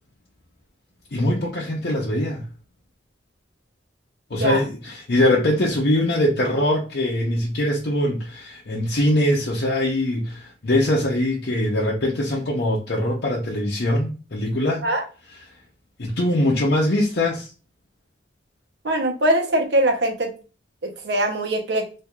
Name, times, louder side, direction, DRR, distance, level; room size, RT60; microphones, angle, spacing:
voice 1, 1.1-2.5 4.3-14.8 15.3-15.4 16.0-17.5, left 1 dB, 60° left, 0.7 m, -22 dB
voice 2, 4.3-4.6 14.8-15.0 18.8-20.3 20.8-21.8, right 1 dB, 70° right, 0.8 m, -22 dB
4.4 x 2.6 x 2.3 m
head